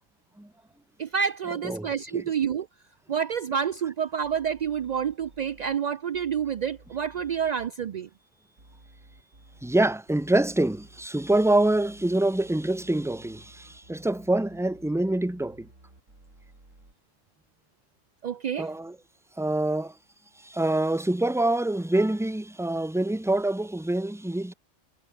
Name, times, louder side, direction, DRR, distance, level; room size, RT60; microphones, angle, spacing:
voice 1, 1.0-2.7 3.1-8.1 18.2-18.7, right 7 dB, 65° right, 0.4 m, -28 dB
sound 1, 4.2-5.8 6.1-7.5 8.6-16.9, right 1 dB, 85° right, 7.5 m, -54 dB
voice 2, 9.6-15.7 18.6-19.0 19.4-19.9 20.4-24.5, right 1 dB, ahead, 0.9 m, -25 dB
omnidirectional pair, 1.3 m